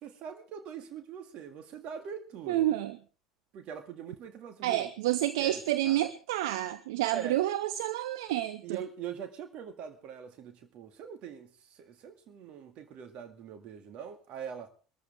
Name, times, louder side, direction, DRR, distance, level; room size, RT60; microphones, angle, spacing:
voice 1, 0.0-2.7 3.5-4.9 5.4-6.0 7.1-7.4 8.6-14.7, right 8 dB, 45° right, 8 dB, 2.1 m, -42 dB
voice 2, 2.5-3.0 4.6-8.8, right 14 dB, 60° right, 15 dB, 0.7 m, -29 dB
22.5 x 14.0 x 3.5 m, 0.36 s
figure-of-eight pair, 70°, 3 cm